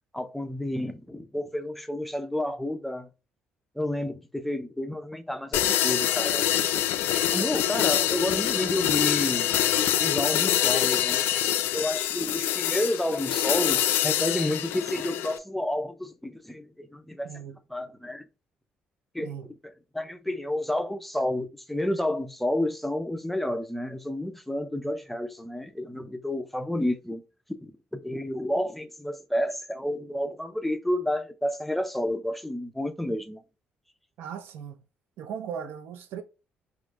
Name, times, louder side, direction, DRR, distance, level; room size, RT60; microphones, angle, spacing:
voice 1, 0.1-3.1 3.8-6.5 7.3-9.5 10.0-11.2 11.7-17.3 17.7-18.2 19.1-19.3 19.9-27.2 27.6-33.4, left 1 dB, 5° left, 0.3 m, -30 dB
sound 1, 5.5-15.4, left 11 dB, 85° left, 0.4 m, -25 dB
voice 2, 17.2-17.6 19.2-19.5 34.2-34.8 35.2-36.2, right 8 dB, 85° right, 0.6 m, -37 dB
3.7 x 3.0 x 2.4 m
cardioid pair, 170°, 4 cm